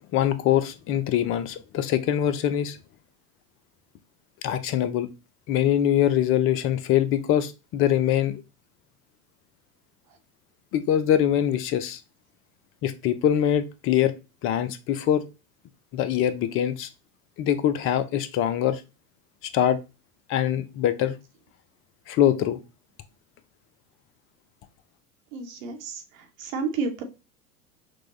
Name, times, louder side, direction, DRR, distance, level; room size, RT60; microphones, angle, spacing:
voice 1, 0.1-2.8 4.4-5.1 5.5-8.4 10.7-12.0 12.8-14.1 14.4-15.2 15.9-16.9 17.4-18.8 19.5-19.8 20.3-21.2 22.1-22.6, left 10 dB, 30° left, 0.4 m, -23 dB
voice 2, 25.3-27.0, right 4 dB, 60° right, 1.0 m, -31 dB
6.0 x 2.2 x 3.0 m
figure-of-eight pair, 80°, 46 cm